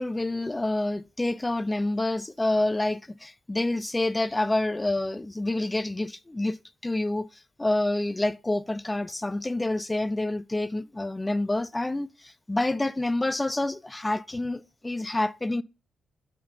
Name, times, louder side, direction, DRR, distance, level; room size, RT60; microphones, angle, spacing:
voice 1, 0.0-6.6 6.8-7.3 7.6-15.6, left 2 dB, 20° left, 0.5 m, -28 dB
5.5 x 5.3 x 5.3 m
hypercardioid pair, 40°, 0 cm